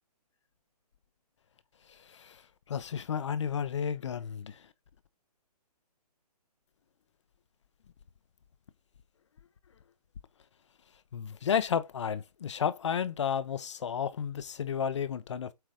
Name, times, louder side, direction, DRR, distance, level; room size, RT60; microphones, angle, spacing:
voice 1, 2.7-4.5 11.1-15.5, left 7 dB, 50° left, 0.8 m, -32 dB
7.8 x 2.9 x 5.0 m
hypercardioid pair, 170°, 20 cm